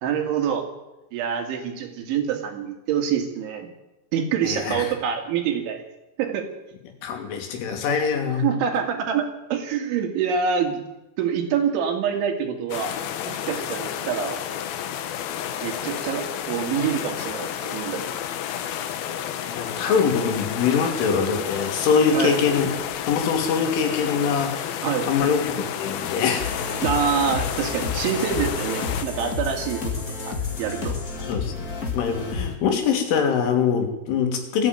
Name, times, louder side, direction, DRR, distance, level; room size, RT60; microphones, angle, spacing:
voice 1, 0.0-0.7 1.1-3.7 4.1-5.8 6.2-6.5 8.3-10.8 11.2-12.9 13.3-14.4 15.6-18.0 22.1-22.4 24.8-25.1 26.8-29.9 30.3-30.9, right 7 dB, 75° right, 4 dB, 4.7 m, -26 dB
voice 2, 4.4-4.8 7.0-8.5 19.5-22.7 23.1-26.5 31.3-31.7 31.9-34.7, left 6 dB, 85° left, 4 dB, 5.3 m, -23 dB
sound 1, 12.7-29.1, left 10 dB, 65° left, 2.6 m, -31 dB
sound 2, 26.4-32.6, left 5 dB, 35° left, 1.4 m, -30 dB
20.0 x 14.5 x 9.3 m, 0.99 s
omnidirectional pair, 5.4 m